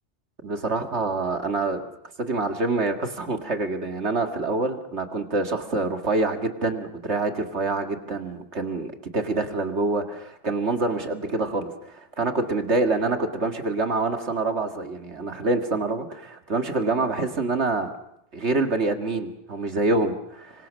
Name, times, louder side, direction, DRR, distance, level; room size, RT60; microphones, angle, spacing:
voice 1, 0.4-1.9 2.2-17.9 18.3-20.7, right 3 dB, 75° right, 5 dB, 2.2 m, -26 dB
26.0 x 24.5 x 6.3 m, 0.77 s
omnidirectional pair, 1.2 m